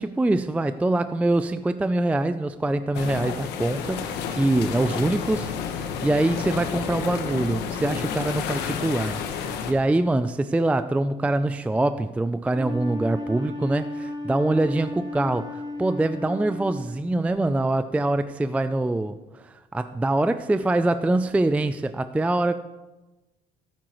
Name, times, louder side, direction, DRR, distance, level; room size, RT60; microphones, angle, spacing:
voice 1, 0.0-19.2 19.4-22.6, right 2 dB, 10° right, 11 dB, 0.3 m, -24 dB
sound 1, 2.9-9.7, left 7 dB, 85° left, 1.2 m, -30 dB
Wind instrument woodwind instrument, 12.5-17.2, left 1 dB, 25° right, 4.2 m, -34 dB
13.0 x 9.5 x 3.1 m, 1.1 s
cardioid pair, 110°, 17 cm